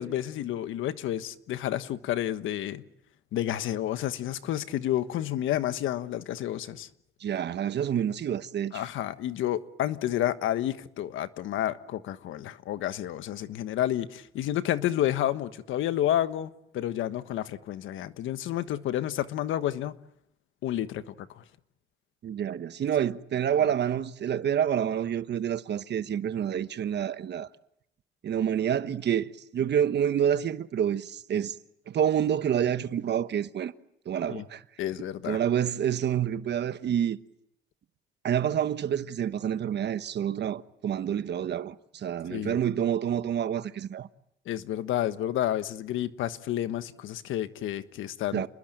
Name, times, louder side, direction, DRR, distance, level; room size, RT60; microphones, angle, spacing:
voice 1, 0.0-2.8 3.3-6.9 8.7-20.0 20.6-21.4 23.6-23.7 34.3-34.4 34.8-35.4 42.3-42.6 44.4-48.5, left 12 dB, 85° left, 1.3 m, -30 dB
voice 2, 7.2-8.8 22.2-27.5 28.2-31.6 31.9-33.7 34.0-34.6 35.2-37.2 38.2-44.1 48.3-48.5, right 9 dB, 60° right, 1.2 m, -28 dB
29.5 x 21.0 x 9.2 m
cardioid pair, 90°, 20 cm